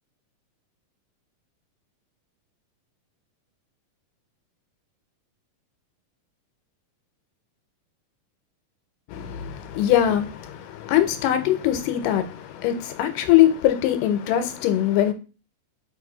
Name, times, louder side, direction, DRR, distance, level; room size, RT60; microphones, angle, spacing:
voice 1, 9.1-15.1, left 12 dB, 80° left, 2.1 m, -22 dB
5.2 x 2.6 x 3.8 m
omnidirectional pair, 3.8 m